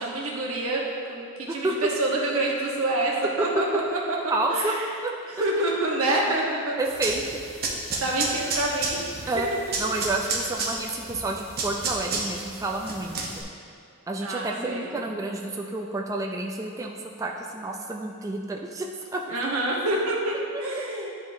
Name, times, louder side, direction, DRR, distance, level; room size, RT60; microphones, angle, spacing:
voice 1, 0.0-4.2 4.5-4.9 5.3-6.8 8.0-9.8 10.2-10.4 14.2-14.9 19.3-21.1, right 2 dB, 70° right, -2 dB, 1.0 m, -27 dB
voice 2, 4.3-4.7 5.0-5.1 6.8-7.4 9.3-9.5 9.8-13.4 14.1-18.9 19.1-19.2, right 2 dB, 15° right, 0 dB, 0.3 m, -29 dB
sound 1, 6.9-13.4, right 3 dB, 45° right, 0.8 m, -32 dB
10.0 x 3.6 x 2.6 m, 2.3 s
head